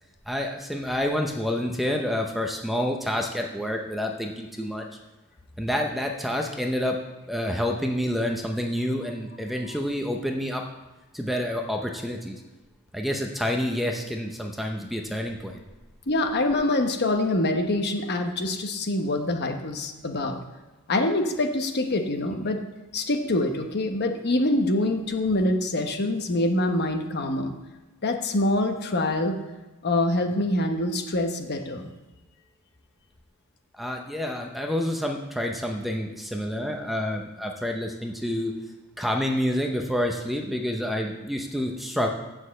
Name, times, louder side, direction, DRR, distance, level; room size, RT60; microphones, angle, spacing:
voice 1, 0.3-4.9 5.6-7.0 7.3-10.6 11.1-12.4 12.9-15.6 33.7-38.5 39.0-42.1, equal, ahead, 2 dB, 0.7 m, -28 dB
voice 2, 16.1-20.4 20.9-22.6 22.9-27.5 28.0-29.4 29.8-31.9, left 1 dB, 50° left, 5 dB, 1.0 m, -25 dB
7.4 x 6.4 x 7.5 m, 1.1 s
head